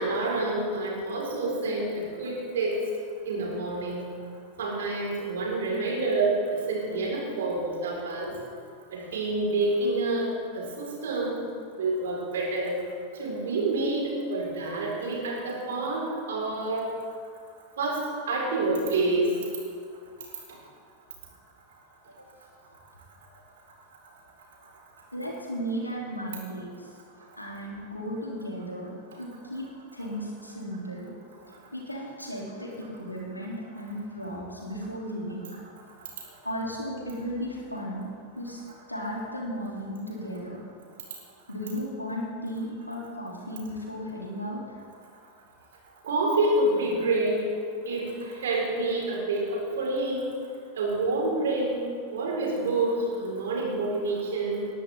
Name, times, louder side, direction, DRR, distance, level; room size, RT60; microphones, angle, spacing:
voice 1, 0.0-2.8 3.2-4.1 4.6-8.3 8.9-10.3 10.5-11.5 11.8-12.8 13.1-16.9 17.8-18.0 18.3-19.4 46.0-47.4 47.8-50.2 50.7-51.7 52.1-54.7, right 2 dB, 60° right, -3 dB, 4.7 m, -28 dB
voice 2, 25.1-26.9 27.4-29.7 29.9-31.1 31.7-35.6 36.4-38.0 38.3-38.6 38.9-40.6 41.5-44.6, equal, 85° left, -4 dB, 3.3 m, -35 dB
20.0 x 13.0 x 3.7 m, 2.2 s
figure-of-eight pair, 90°, 0 cm